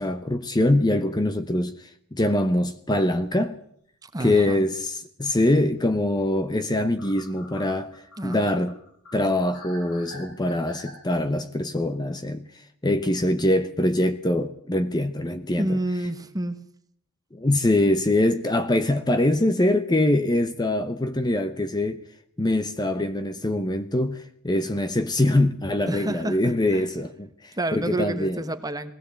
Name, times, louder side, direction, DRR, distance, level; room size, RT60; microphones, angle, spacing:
voice 1, 0.0-3.6 4.2-7.9 8.2-8.8 9.1-15.8 17.3-22.0 22.4-28.4, left 1 dB, 20° left, 0.8 m, -23 dB
sound 1, 2.8-3.1 3.4-3.5 6.0-6.1 6.3-6.4 6.7-11.0, left 1 dB, 85° left, 6.9 m, -45 dB
voice 2, 4.0-4.7 8.2-8.6 15.6-16.6 25.9-26.8 27.6-28.9, right 1 dB, 15° right, 1.3 m, -29 dB
20.0 x 17.0 x 8.2 m
head